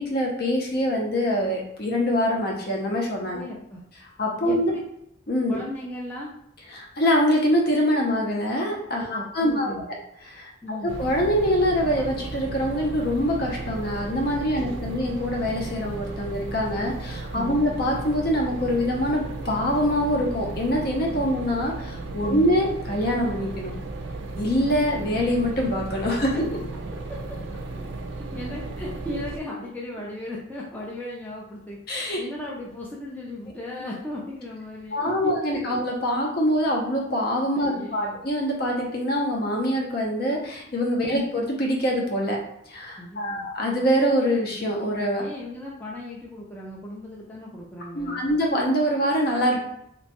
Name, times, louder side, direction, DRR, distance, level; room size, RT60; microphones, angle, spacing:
voice 1, 0.0-3.4 4.2-4.7 5.3-5.6 6.7-9.7 10.2-10.5 10.8-23.7 24.4-26.3 31.9-32.2 34.9-42.4 42.7-45.2 47.9-49.6, equal, 50° left, -1 dB, 0.7 m, -24 dB
voice 2, 3.3-3.8 4.4-4.8 5.5-6.3 9.0-9.8 10.6-10.9 14.5-15.0 17.3-17.6 21.2-21.3 22.2-22.5 26.3-26.4 27.1-27.2 28.3-35.8 37.6-38.2 43.0-43.5 45.2-48.3, left 1 dB, 10° left, -4 dB, 0.4 m, -36 dB
sound 1, 10.9-29.4, right 2 dB, 70° right, 0.4 m, -35 dB
2.9 x 2.2 x 2.9 m, 0.76 s
head